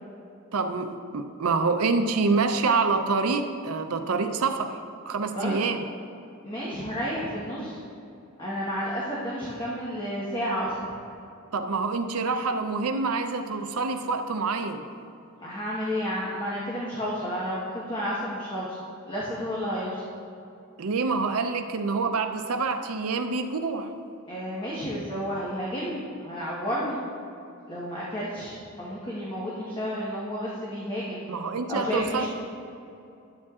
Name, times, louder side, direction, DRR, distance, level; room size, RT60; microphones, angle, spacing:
voice 1, 0.5-5.8 11.5-14.8 20.8-23.9 31.3-32.3, right 4 dB, 80° right, 7 dB, 0.6 m, -26 dB
voice 2, 6.4-7.8 8.4-10.8 15.4-18.8 19.1-20.0 24.3-27.0 27.7-31.2 31.7-32.3, equal, 20° left, -7 dB, 1.2 m, -31 dB
12.0 x 8.5 x 2.4 m, 2.7 s
head